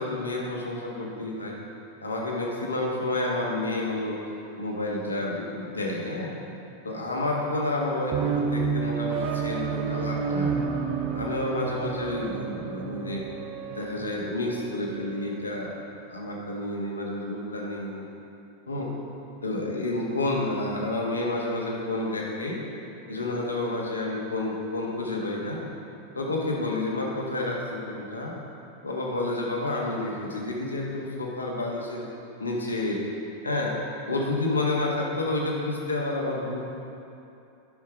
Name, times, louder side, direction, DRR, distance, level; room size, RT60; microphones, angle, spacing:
voice 1, 0.0-1.6 2.0-4.2 4.6-6.3 6.8-10.6 11.1-13.3 13.7-15.8 16.1-18.0 18.7-18.9 19.4-22.6 23.1-25.6 26.1-28.3 28.8-32.1 32.4-33.0 33.4-33.7 34.1-36.6, left 2 dB, 75° left, -2 dB, 1.4 m, -29 dB
sound 1, 8.1-15.4, right 6 dB, 40° right, 0.6 m, -30 dB
9.6 x 5.8 x 5.0 m, 2.7 s
figure-of-eight pair, 90°, 0 cm